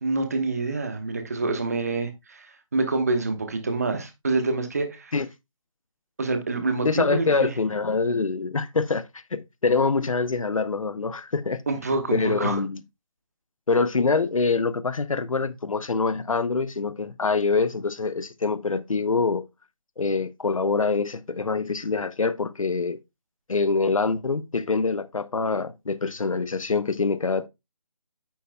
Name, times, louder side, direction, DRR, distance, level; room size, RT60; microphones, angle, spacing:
voice 1, 0.0-5.1 6.2-7.5 11.7-12.6, right 3 dB, 30° right, 1.1 m, -27 dB
voice 2, 6.8-11.6 12.1-12.8 13.7-19.4 20.0-23.0 23.5-27.5, left 4 dB, 75° left, 0.8 m, -25 dB
9.2 x 8.6 x 2.2 m
figure-of-eight pair, 175°, 17 cm